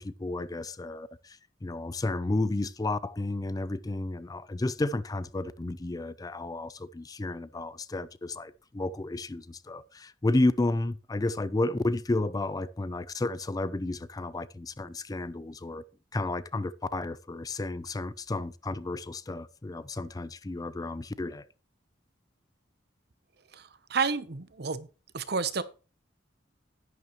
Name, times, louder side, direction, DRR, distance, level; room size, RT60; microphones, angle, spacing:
voice 1, 0.0-15.8 16.1-21.5, left 2 dB, 20° left, 0.4 m, -32 dB
voice 2, 23.5-24.9 25.1-25.6, right 5 dB, 60° right, 0.9 m, -30 dB
11.0 x 9.7 x 3.1 m
head